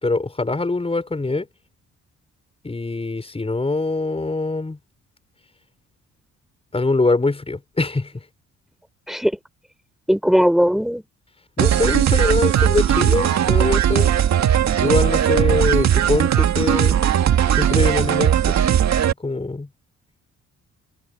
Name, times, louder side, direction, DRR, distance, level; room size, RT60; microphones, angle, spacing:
voice 1, 0.0-1.5 2.6-4.8 6.7-8.3 11.6-14.1 14.8-17.0 17.5-18.5 19.1-19.7, left 3 dB, 20° left, 6.0 m, -23 dB
voice 2, 10.1-11.0, equal, ahead, 6.0 m, -18 dB
sound 1, 11.6-19.1, right 10 dB, 65° right, 1.9 m, -18 dB
cardioid pair, 90°, 30 cm